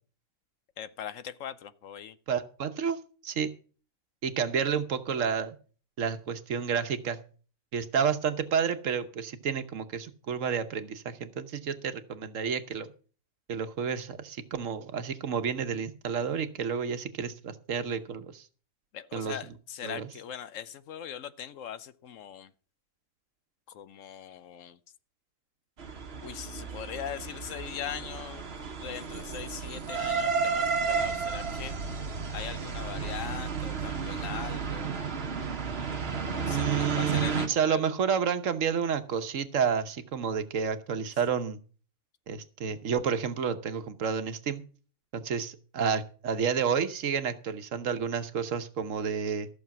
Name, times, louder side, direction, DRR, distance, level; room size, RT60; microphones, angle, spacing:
voice 1, 0.8-2.2 18.9-22.5 23.7-24.8 26.2-28.5 28.8-32.0 32.3-35.4 36.4-37.9, left 9 dB, 70° left, 1.0 m, -41 dB
voice 2, 2.3-3.5 4.2-5.6 6.0-7.2 7.7-12.9 13.5-18.4 19.1-19.4 19.8-20.1 36.5-41.6 42.3-44.6 45.1-49.5, right 7 dB, 65° right, 1.3 m, -30 dB
sound 1, 25.8-37.5, right 5 dB, 50° right, 1.2 m, -32 dB
14.0 x 6.7 x 5.9 m
omnidirectional pair, 1.4 m